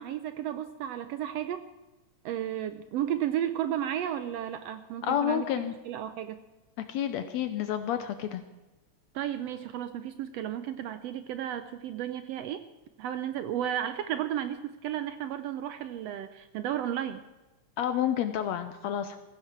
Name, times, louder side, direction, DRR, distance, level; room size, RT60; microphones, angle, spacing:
voice 1, 0.0-1.6 2.2-5.4 5.9-6.4 9.1-12.6 13.0-17.2, right 10 dB, 75° right, 10 dB, 1.6 m, -33 dB
voice 2, 5.0-5.7 6.9-8.4 17.8-19.2, left 10 dB, 75° left, 9 dB, 1.9 m, -29 dB
16.0 x 15.5 x 4.5 m, 1.1 s
omnidirectional pair, 3.4 m